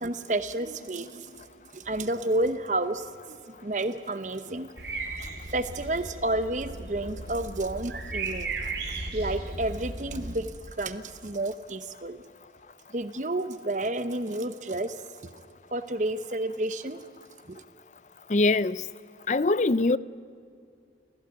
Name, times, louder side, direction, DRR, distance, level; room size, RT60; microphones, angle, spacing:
voice 1, 0.0-1.4 1.7-4.7 5.1-8.7 9.1-10.5 10.8-12.2 12.9-15.0 15.7-17.0 17.5-17.6, right 2 dB, 45° right, 0.9 m, -30 dB
sound 1, 4.8-10.4, right 3 dB, 75° right, 3.7 m, -36 dB
voice 2, 18.3-18.8 19.3-20.0, left 2 dB, 40° left, 0.6 m, -22 dB
28.0 x 17.0 x 9.3 m
head